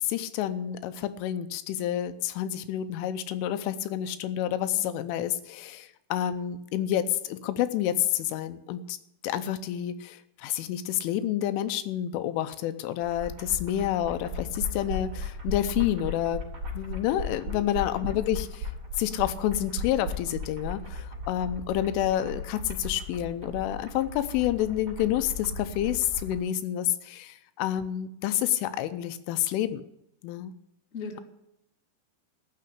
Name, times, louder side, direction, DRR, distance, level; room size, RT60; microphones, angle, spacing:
voice 1, 0.0-9.0 9.2-16.4 16.7-18.7 19.0-29.8 30.2-30.5, left 12 dB, 80° left, 11 dB, 3.2 m, -29 dB
sound 1, 13.0-26.4, left 1 dB, 35° right, 4.7 m, -37 dB
voice 2, 17.3-17.7 30.9-31.2, left 4 dB, 30° left, 1 dB, 1.3 m, -39 dB
15.0 x 6.8 x 9.9 m, 0.81 s
omnidirectional pair, 5.7 m